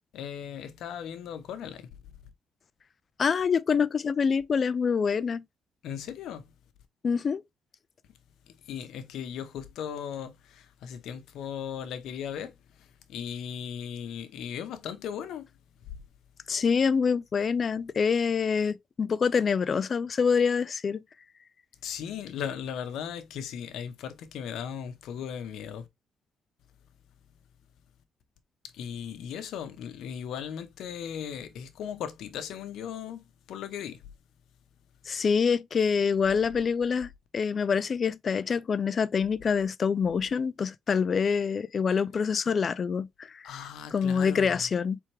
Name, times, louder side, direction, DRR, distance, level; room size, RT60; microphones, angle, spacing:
voice 1, 0.1-1.9 5.8-6.5 8.5-15.5 15.8-15.9 21.8-25.9 28.7-34.1 43.4-44.7, left 8 dB, 80° left, 0.8 m, -37 dB
voice 2, 3.2-5.4 7.0-7.4 16.5-21.0 35.1-43.5 43.9-45.0, left 6 dB, 45° left, 0.4 m, -26 dB
4.4 x 3.5 x 3.2 m
cardioid pair, 90°, 0 cm